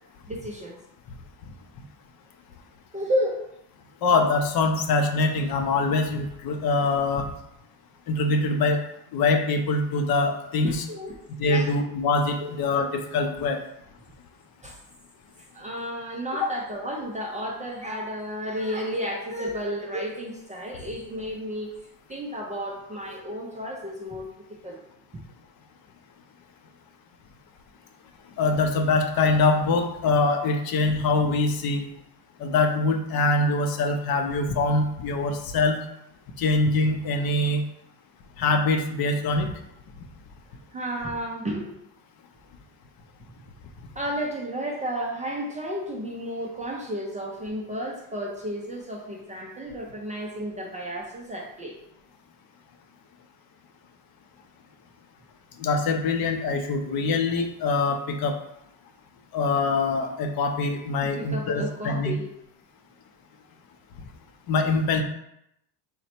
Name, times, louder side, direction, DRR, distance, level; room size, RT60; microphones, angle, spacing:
voice 1, 0.3-0.8 2.9-3.4 10.6-11.2 11.5-11.7 12.4-12.5 14.6-14.8 15.5-21.7 22.1-24.8 40.7-41.7 43.9-51.8 61.2-62.3, equal, 20° right, -2 dB, 0.3 m, -32 dB
voice 2, 4.0-7.3 8.1-8.8 9.1-10.8 11.4-13.6 16.4-16.5 28.4-31.9 32.4-35.8 36.4-37.6 38.4-39.5 55.6-58.4 59.3-62.2 64.5-65.0, left 3 dB, 55° left, 5 dB, 0.6 m, -24 dB
3.9 x 2.2 x 4.2 m, 0.80 s
cardioid pair, 130°, 44 cm